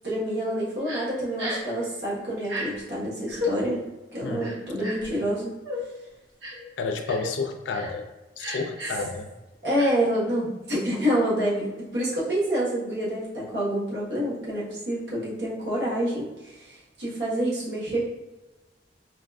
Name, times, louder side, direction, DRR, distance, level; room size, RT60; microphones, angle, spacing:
voice 1, 0.0-3.8 4.1-5.5 9.6-18.0, right 1 dB, 65° right, -7 dB, 1.2 m, -27 dB
Crying sobbing, 0.9-1.0 1.4-1.7 2.4-2.6 3.3-3.5 4.4-5.1 5.6-5.8 6.4-6.7 7.0-7.3 7.7-7.9 8.4-9.0 9.8-9.9, left 1 dB, 85° right, 0.9 m, -33 dB
voice 2, 6.8-8.1 8.4-9.3, left 4 dB, 85° left, 5 dB, 0.4 m, -30 dB
4.6 x 2.4 x 2.3 m, 1.1 s
head